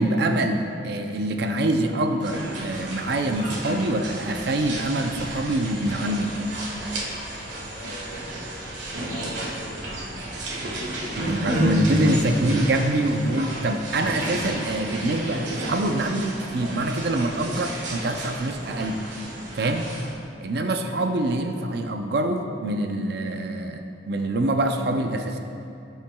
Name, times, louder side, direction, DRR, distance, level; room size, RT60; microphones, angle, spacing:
voice 1, 0.0-6.3 11.2-19.0 19.6-19.9 20.4-25.4, right 1 dB, 60° right, 5 dB, 0.5 m, -25 dB
sound 1, 2.2-20.1, right 1 dB, 85° right, 1.6 m, -31 dB
voice 2, 7.7-10.1, equal, 35° left, -4 dB, 1.9 m, -41 dB
15.5 x 5.7 x 2.3 m, 2.6 s
head